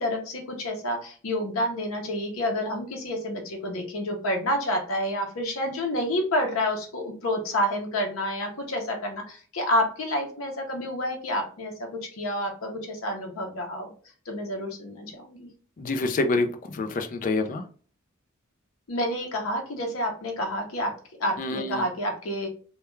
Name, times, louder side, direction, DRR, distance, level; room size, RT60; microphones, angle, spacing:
voice 1, 0.0-13.9 14.3-15.5 18.9-20.9 21.2-22.5, left 1 dB, 80° left, 1 dB, 0.7 m, -29 dB
voice 2, 15.8-17.6 21.4-21.8, left 3 dB, 40° left, 6 dB, 0.3 m, -27 dB
2.2 x 2.2 x 3.0 m, 0.42 s
head